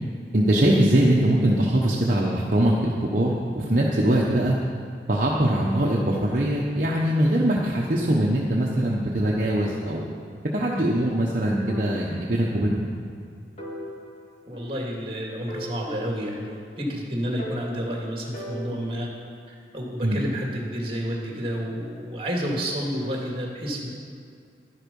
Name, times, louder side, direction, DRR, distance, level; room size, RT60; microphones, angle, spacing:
voice 1, 0.3-4.6 5.1-10.0 10.5-12.9 20.0-20.2, right 1 dB, 45° right, -3 dB, 1.1 m, -22 dB
sound 1, 11.7-12.8 13.1-13.2 13.6-15.1 15.5-16.9 17.4-19.2, left 1 dB, 40° left, 2.5 m, -40 dB
voice 2, 14.5-19.1 19.5-23.9, equal, 30° right, -1 dB, 2.3 m, -30 dB
12.0 x 11.0 x 5.4 m, 2.3 s
head